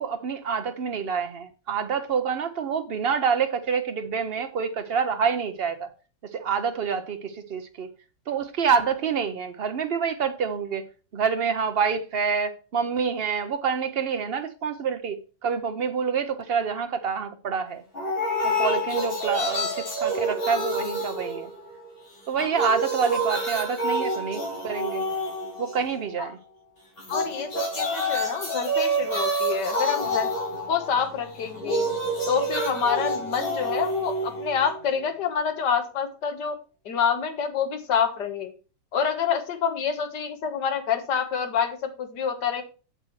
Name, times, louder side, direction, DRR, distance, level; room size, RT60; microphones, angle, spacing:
voice 1, 0.0-5.9 6.3-7.9 8.3-10.8 11.1-17.8 18.4-21.5 22.3-25.0 25.6-26.4, right 6 dB, 85° right, 0.5 m, -27 dB
sound 1, 17.9-21.9 22.2-26.0 27.0-35.0, right 1 dB, 30° left, 3.9 m, -28 dB
voice 2, 27.1-30.3 30.7-31.9 32.3-36.6 36.9-38.5 38.9-42.6, left 7 dB, 70° left, 1.9 m, -27 dB
8.0 x 7.5 x 3.1 m
omnidirectional pair, 1.9 m